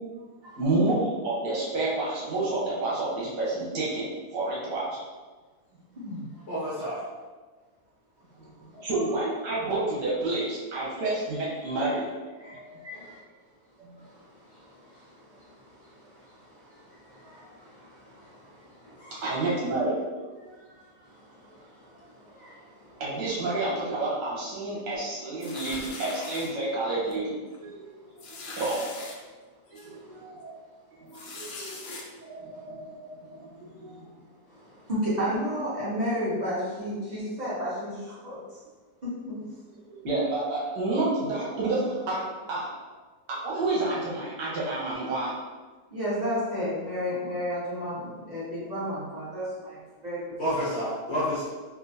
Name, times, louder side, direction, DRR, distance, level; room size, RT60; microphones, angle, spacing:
voice 1, 0.6-5.0 8.4-13.0 13.8-14.0 19.1-20.8 23.0-29.1 29.7-30.5 31.0-34.1 39.9-42.2 42.5-42.7 43.3-45.3, right 2 dB, 80° right, -6 dB, 1.6 m, -30 dB
voice 2, 5.9-6.3 6.8-6.9 8.7-8.8 12.9-13.2 14.0-19.1 21.0-23.0 28.4-28.6 29.9-30.2 31.3-31.7 34.5-38.4 39.0-39.4 45.9-50.2 50.5-50.6, equal, 25° right, -12 dB, 1.5 m, -34 dB
voice 3, 6.5-7.0 19.0-19.2 50.4-51.4, equal, 50° left, -9 dB, 0.9 m, -29 dB
sound 1, 25.4-26.5 27.1-27.3 27.5-27.6 28.2-29.2 29.8-29.9 31.1-32.0, left 3 dB, 75° left, 1.2 m, -40 dB
3.7 x 2.5 x 2.6 m, 1.4 s
omnidirectional pair, 1.8 m